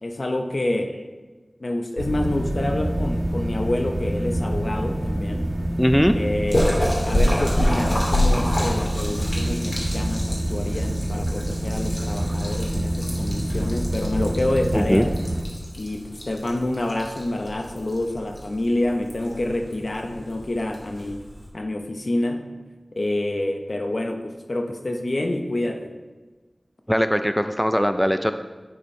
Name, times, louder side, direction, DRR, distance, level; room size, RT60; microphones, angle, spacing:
voice 1, 0.0-1.0 1.6-5.5 6.2-15.1 15.8-21.2 21.5-22.5 22.9-25.9, left 1 dB, 60° left, 4 dB, 0.8 m, -27 dB
sound 1, 2.0-15.4, right 1 dB, 50° right, 1.2 m, -26 dB
voice 2, 5.8-6.2 14.7-15.1 26.9-28.3, equal, 5° left, 8 dB, 0.4 m, -20 dB
Splash splatter, 6.5-21.5, left 1 dB, 45° left, 1.9 m, -28 dB
9.9 x 4.4 x 4.3 m, 1.3 s
wide cardioid pair, 60°, 0 cm